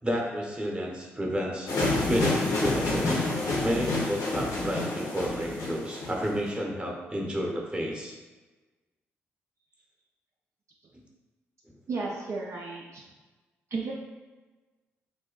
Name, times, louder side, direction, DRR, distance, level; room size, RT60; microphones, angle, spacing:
voice 1, 0.0-1.7 2.0-3.2 3.6-8.1 12.0-12.1, equal, 15° right, -1 dB, 0.9 m, -31 dB
sound 1, 1.7-6.5, left 2 dB, 70° left, 0.8 m, -28 dB
voice 2, 11.9-13.0 13.7-13.9, right 3 dB, 50° right, -3 dB, 0.5 m, -33 dB
2.7 x 2.1 x 3.8 m, 1.2 s
hypercardioid pair, 45°, 6 cm